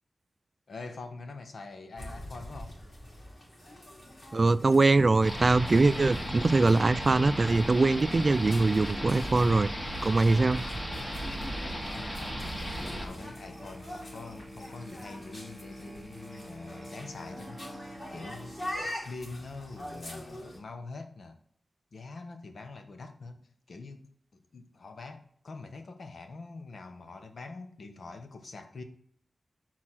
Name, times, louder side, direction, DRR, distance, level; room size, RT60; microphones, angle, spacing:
voice 1, 0.7-2.8 11.6-18.6 19.0-21.4 21.9-28.8, left 3 dB, 70° left, 1.0 m, -44 dB
sound 1, 2.0-20.6, left 1 dB, 45° left, 2.4 m, -45 dB
voice 2, 4.3-9.7 10.0-10.6, right 3 dB, 40° right, 0.3 m, -23 dB
sound 2, 5.2-13.1, equal, 20° left, 1.6 m, -36 dB
Musical instrument, 6.0-18.8, equal, 5° right, 1.0 m, -47 dB
6.5 x 4.2 x 5.9 m
wide cardioid pair, 110°, 0 cm